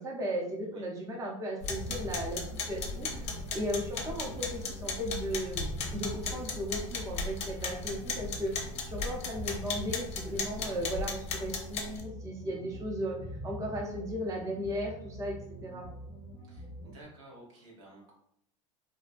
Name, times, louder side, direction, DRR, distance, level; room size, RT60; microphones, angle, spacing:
voice 1, 0.0-2.4 2.7-3.3 3.5-8.5 8.9-13.2 13.4-15.3 15.6-15.9, equal, 20° right, -1 dB, 0.6 m, -36 dB
sound 1, 1.6-12.0, left 4 dB, 40° left, 0.6 m, -37 dB
sound 2, 1.7-17.0, right 1 dB, 15° left, 0.9 m, -44 dB
voice 2, 16.4-18.1, right 1 dB, 80° right, -3 dB, 0.9 m, -53 dB
2.5 x 2.1 x 2.4 m, 0.72 s
hypercardioid pair, 95°, 16 cm